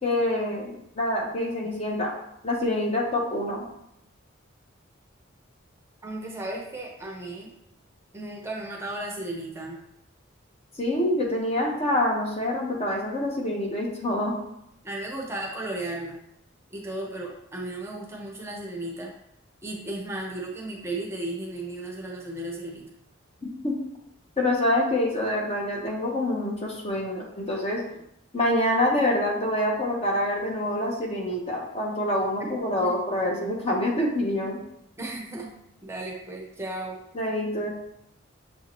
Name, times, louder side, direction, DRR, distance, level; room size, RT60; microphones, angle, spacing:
voice 1, 0.0-2.1 2.4-3.6 10.8-14.4 23.4-23.8 24.4-27.8 28.3-34.6 37.1-37.7, left 1 dB, 30° left, 0 dB, 0.7 m, -26 dB
voice 2, 6.0-7.5 8.1-9.8 14.8-16.2 16.7-19.1 19.6-22.9 32.8-32.9 35.0-35.5 35.8-37.0, right 2 dB, 15° right, -1 dB, 0.6 m, -35 dB
6.5 x 2.7 x 3.0 m, 0.78 s
head